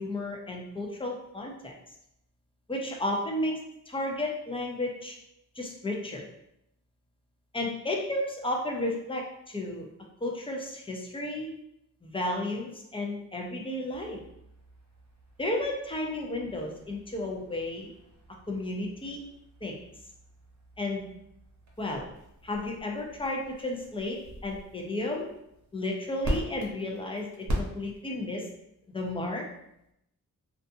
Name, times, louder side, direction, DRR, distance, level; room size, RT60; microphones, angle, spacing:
voice 1, 0.0-1.7 2.7-3.6 3.9-5.2 5.6-6.2 7.5-9.9 10.2-11.5 12.0-14.2 15.4-17.9 18.5-19.2 19.6-19.8 20.8-21.0 21.8-22.0 22.4-25.3 25.7-28.5 28.9-29.5, left 1 dB, 15° left, 0 dB, 0.5 m, -33 dB
sound 1, 13.9-28.3, equal, 55° right, 0.8 m, -41 dB
2.5 x 2.4 x 2.6 m, 0.80 s
cardioid pair, 70°, 34 cm